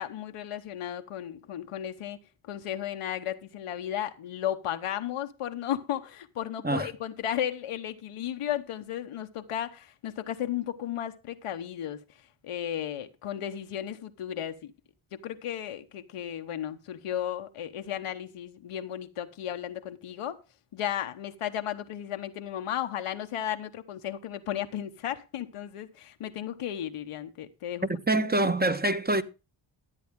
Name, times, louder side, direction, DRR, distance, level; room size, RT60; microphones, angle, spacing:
voice 1, 0.0-2.2 2.4-12.0 12.4-14.7 15.1-20.4 20.7-27.9, left 10 dB, 90° left, 1.1 m, -34 dB
voice 2, 27.8-29.2, right 2 dB, 20° right, 1.1 m, -25 dB
13.5 x 8.3 x 3.6 m
cardioid pair, 50°, 50 cm